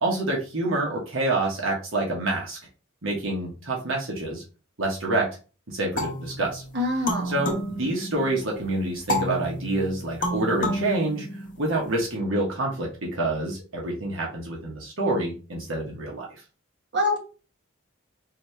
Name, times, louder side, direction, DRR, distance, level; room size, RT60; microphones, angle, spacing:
voice 1, 0.0-2.6 3.0-4.4 4.8-5.3 5.7-6.6 7.2-11.2 11.6-16.3, right 2 dB, 75° right, -2 dB, 1.2 m, -27 dB
sound 1, 6.0-8.5 9.1-11.9, equal, 40° left, 0.9 m, -31 dB
voice 2, 6.7-7.4 16.9-17.2, left 1 dB, 55° right, -1 dB, 1.3 m, -25 dB
4.1 x 2.8 x 3.2 m, 0.35 s
head